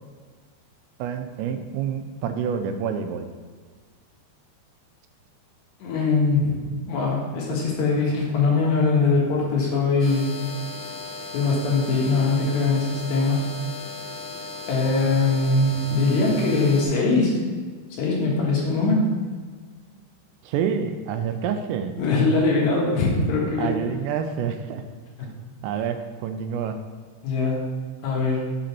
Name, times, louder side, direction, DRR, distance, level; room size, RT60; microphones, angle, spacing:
voice 1, 1.0-3.3 20.4-21.9 23.6-24.8 25.6-26.8, right 7 dB, 85° right, 7 dB, 2.7 m, -28 dB
voice 2, 5.8-10.3 11.3-13.5 14.7-17.4 18.0-19.1 22.0-23.8 25.2-25.3 27.2-27.7 28.0-28.4, left 3 dB, 75° left, -3 dB, 3.5 m, -22 dB
sound 1, 10.0-16.9, left 3 dB, 55° left, 1.7 m, -36 dB
7.4 x 3.9 x 5.9 m, 1.5 s
omnidirectional pair, 5.1 m